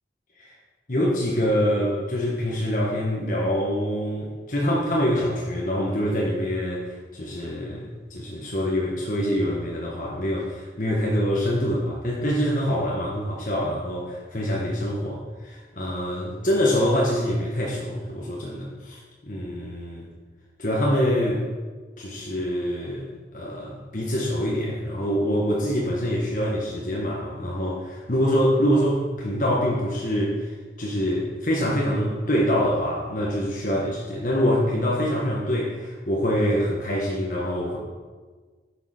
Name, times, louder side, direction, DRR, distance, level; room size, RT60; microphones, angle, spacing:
voice 1, 0.9-20.1 20.6-21.4 22.0-23.1 23.3-37.8, equal, 45° left, -4 dB, 1.4 m, -25 dB
9.6 x 6.8 x 6.5 m, 1.4 s
head